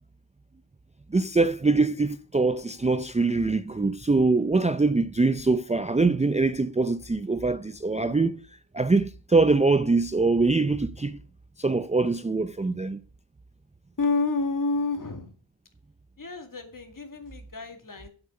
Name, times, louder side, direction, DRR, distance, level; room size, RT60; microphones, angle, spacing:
voice 1, 1.1-8.3 8.7-11.2 11.6-13.0, right 3 dB, 15° right, 0.5 m, -23 dB
voice 2, 8.0-8.4 11.0-11.2 14.0-15.3 16.2-18.1, left 3 dB, 45° left, 2.2 m, -30 dB
8.9 x 7.8 x 6.5 m
wide cardioid pair, 80°, 46 cm